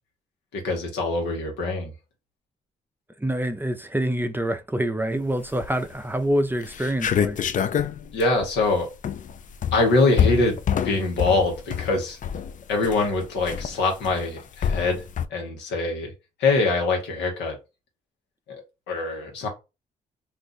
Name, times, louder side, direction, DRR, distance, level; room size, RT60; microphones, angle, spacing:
voice 1, 0.5-1.9 8.1-8.9 9.7-10.6 10.8-12.2 12.7-15.0 15.3-16.1 16.4-17.6 18.5-18.6 18.9-19.5, left 3 dB, 90° left, 1.0 m, -23 dB
voice 2, 3.2-7.4, right 1 dB, 10° right, 0.5 m, -26 dB
sound 1, 5.5-5.9 6.3-6.4 6.6-15.3, left 8 dB, 45° left, 0.4 m, -27 dB
2.5 x 2.4 x 3.9 m
supercardioid pair, 55°, 18 cm